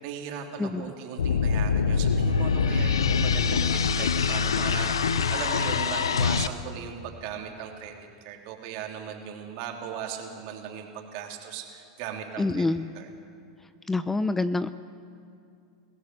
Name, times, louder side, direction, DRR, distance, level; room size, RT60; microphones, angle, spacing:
voice 1, 0.0-7.9 8.2-12.6 12.9-13.1, right 8 dB, 55° right, 2 dB, 3.2 m, -38 dB
voice 2, 0.6-0.9 12.4-12.9 13.9-14.7, left 2 dB, 10° left, 13 dB, 0.6 m, -26 dB
sound 1, 1.2-6.5, left 5 dB, 90° left, 0.7 m, -24 dB
21.5 x 16.5 x 7.8 m, 2.5 s
hypercardioid pair, 100°, 2 cm